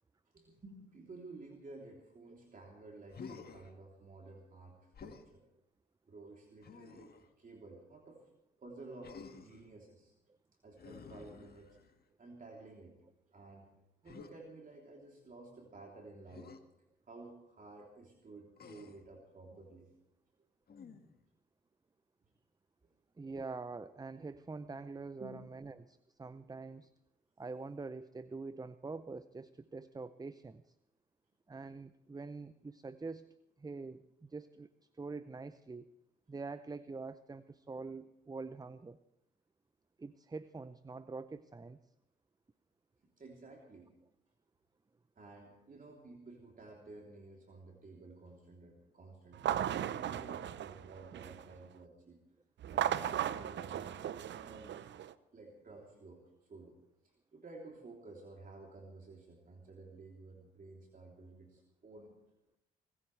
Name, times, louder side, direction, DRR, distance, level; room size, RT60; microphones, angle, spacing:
voice 1, 0.3-5.4 6.1-8.2 8.6-10.1 10.6-11.8 12.2-13.0 13.3-13.7 14.0-16.6 17.1-19.9 25.2-25.5 43.2-43.9 45.2-52.2 52.7-54.0 54.4-54.9 55.3-56.2 56.5-56.8 57.3-62.1, right 3 dB, 40° right, -1 dB, 3.3 m, -53 dB
Human voice, 3.1-3.7 4.9-5.3 6.6-7.3 9.0-9.7 10.8-12.0 14.1-14.3 16.3-16.6 18.6-19.1 20.7-21.2, left 5 dB, 50° left, 1.7 m, -51 dB
voice 2, 23.2-26.9 27.4-30.8 31.5-34.7 34.9-35.9 36.3-39.0 40.0-41.8, right 3 dB, 20° right, 14 dB, 0.6 m, -45 dB
sound 1, 49.3-51.6 52.6-55.1, right 10 dB, 60° right, 0.8 m, -37 dB
26.0 x 15.0 x 3.3 m, 0.85 s
supercardioid pair, 55°, 21 cm